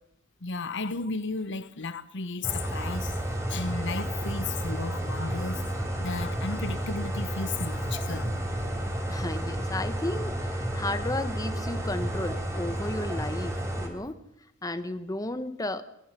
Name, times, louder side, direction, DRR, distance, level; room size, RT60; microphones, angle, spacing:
voice 1, 0.4-3.2 3.5-5.6 6.0-8.3, left 3 dB, 60° left, 1.2 m, -34 dB
sound 1, 2.4-13.9, right 1 dB, 15° right, 3.8 m, -31 dB
voice 2, 9.1-14.2 14.6-15.8, left 1 dB, 15° left, 1.1 m, -33 dB
21.0 x 20.5 x 6.8 m
head